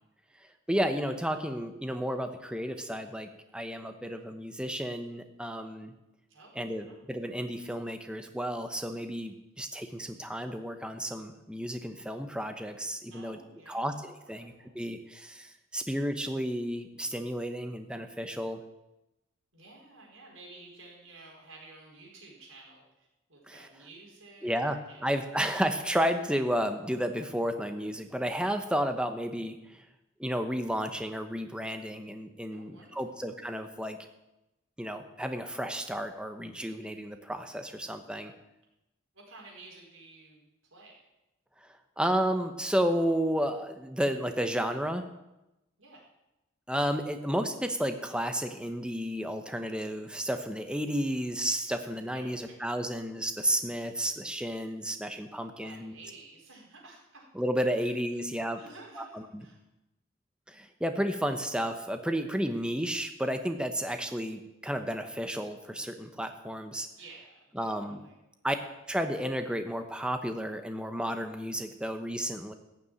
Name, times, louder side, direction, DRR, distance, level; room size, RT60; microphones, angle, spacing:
voice 1, 0.7-5.9 6.6-13.4 13.7-18.6 23.5-23.7 24.4-29.8 30.2-34.0 34.8-38.3 41.6-45.1 46.7-55.9 57.3-58.6 59.0-59.5 60.5-66.9 67.5-68.0 68.4-68.6 68.9-72.5, equal, 5° right, 7 dB, 1.0 m, -32 dB
voice 2, 6.3-7.0 13.1-14.8 19.5-25.0 32.5-33.2 36.8-36.9 39.1-41.0 45.8-46.0 52.1-52.6 55.4-57.3 57.8-58.2 58.6-59.6 67.0-68.2, right 3 dB, 85° right, -1 dB, 4.8 m, -53 dB
15.0 x 7.0 x 9.1 m, 0.95 s
head